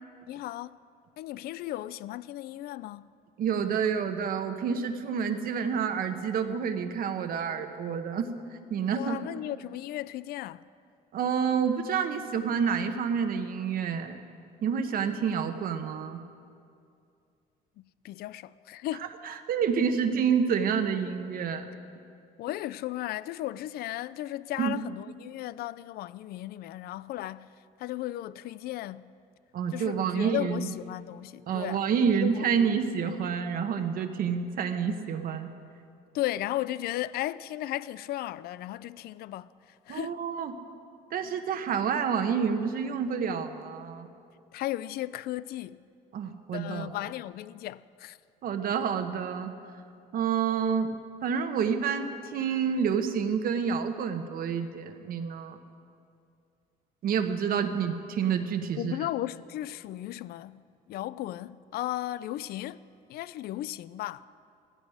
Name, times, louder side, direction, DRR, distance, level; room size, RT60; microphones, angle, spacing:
voice 1, 0.3-0.8 1.2-3.1 8.9-10.6 17.8-19.1 22.4-27.5 27.8-29.1 29.7-32.5 36.1-39.5 39.9-40.2 44.5-45.8 46.5-48.2 58.8-60.6 60.9-62.8 63.1-64.3, left 14 dB, 65° left, 0.4 m, -35 dB
voice 2, 3.4-8.3 8.7-9.2 11.1-14.2 14.6-16.2 19.0-21.7 24.6-24.8 29.5-30.7 31.5-35.5 39.9-40.6 41.1-44.1 46.1-46.9 48.4-49.5 50.1-55.6 57.0-59.0, right 7 dB, 60° right, 1.1 m, -28 dB
15.5 x 15.5 x 4.9 m
cardioid pair, 110°, 17 cm